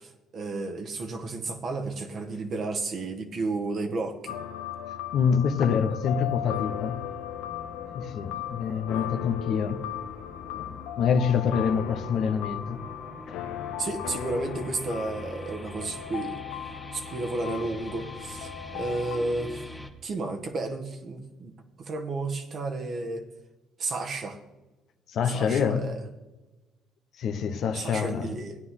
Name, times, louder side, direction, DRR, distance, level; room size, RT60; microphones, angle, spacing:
voice 1, 0.0-4.4 13.8-16.4 16.9-19.7 20.0-23.3 23.8-24.4 25.2-26.0 27.7-28.6, right 3 dB, 50° right, 1.5 m, -32 dB
sound 1, 4.3-19.2, left 12 dB, 80° left, 0.6 m, -37 dB
voice 2, 5.1-7.0 7.9-9.8 10.5-12.8 13.3-13.4 25.1-25.9 27.2-28.3, left 6 dB, 65° left, 1.0 m, -26 dB
sound 2, 6.1-19.9, left 2 dB, 10° left, 1.3 m, -44 dB
14.0 x 9.6 x 3.8 m
supercardioid pair, 70°, 0 cm